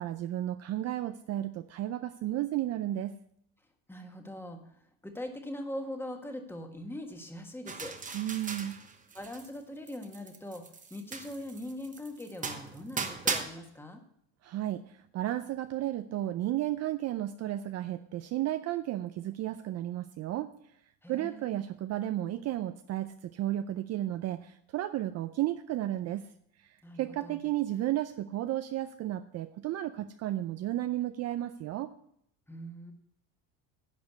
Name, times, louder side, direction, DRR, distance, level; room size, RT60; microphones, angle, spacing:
voice 1, 0.0-3.1 8.1-8.8 14.4-20.5 21.1-26.3 26.6-31.9, right 13 dB, 45° right, 10 dB, 0.5 m, -33 dB
voice 2, 3.9-8.0 9.1-10.6 10.9-14.0 21.0-21.6 26.8-27.4 32.5-32.9, left 1 dB, 5° left, 4 dB, 1.5 m, -41 dB
sound 1, 7.7-9.6 9.9-13.4, right 5 dB, 20° right, 1.0 m, -37 dB
10.5 x 5.1 x 8.1 m, 0.70 s
supercardioid pair, 115°, 38 cm